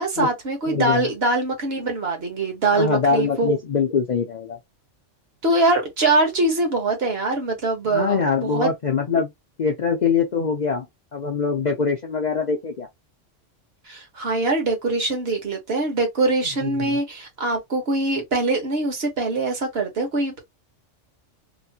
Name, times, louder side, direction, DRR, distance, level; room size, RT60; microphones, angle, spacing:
voice 1, 0.0-3.6 5.4-8.7 13.9-20.4, right 2 dB, 60° right, 1.3 m, -23 dB
voice 2, 0.7-1.1 2.7-4.6 7.9-9.3 9.6-10.9 11.1-12.9 16.6-17.0, left 5 dB, 50° left, 0.5 m, -23 dB
3.0 x 2.5 x 2.7 m
omnidirectional pair, 1.2 m